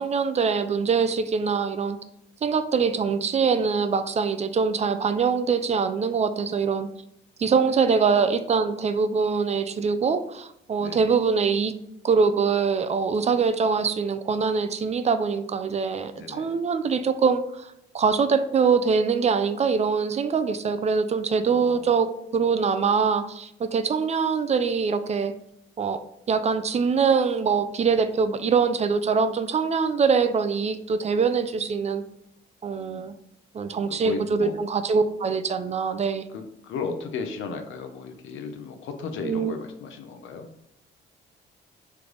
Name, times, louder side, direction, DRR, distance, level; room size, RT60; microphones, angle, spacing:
voice 1, 0.0-2.0 2.4-6.9 7.4-11.7 12.0-25.3 25.8-26.0 26.3-32.0 32.6-33.1 33.5-36.2 39.2-39.6, right 5 dB, 35° right, 11 dB, 0.3 m, -23 dB
voice 2, 10.8-11.1 16.2-16.6 21.5-21.9 32.7-33.1 33.9-34.5 36.3-40.5, left 5 dB, 80° left, 5 dB, 0.7 m, -35 dB
3.3 x 3.2 x 3.8 m, 0.80 s
cardioid pair, 90°, 20 cm